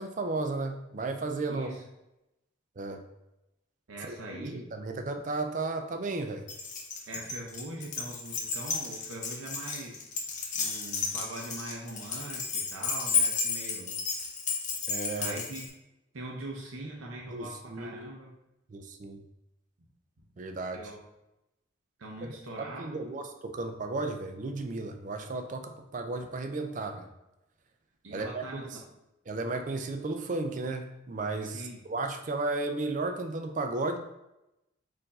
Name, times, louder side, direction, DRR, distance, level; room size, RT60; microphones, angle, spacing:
voice 1, 0.0-1.7 2.8-3.0 4.1-6.5 14.9-15.4 17.3-18.1 18.7-19.2 20.4-20.8 22.2-22.3 22.6-27.1 28.1-28.8 29.3-34.0, right 3 dB, 40° right, 5 dB, 0.4 m, -34 dB
voice 2, 1.5-1.8 3.9-4.6 7.1-10.0 10.5-14.0 15.2-15.6 16.1-18.3 20.7-21.0 22.0-23.0 28.0-28.8 31.4-31.8, right 1 dB, 85° right, -2 dB, 0.7 m, -42 dB
Keys jangling, 6.5-15.7, left 5 dB, 40° left, 0.6 m, -32 dB
4.4 x 2.6 x 4.1 m, 0.91 s
head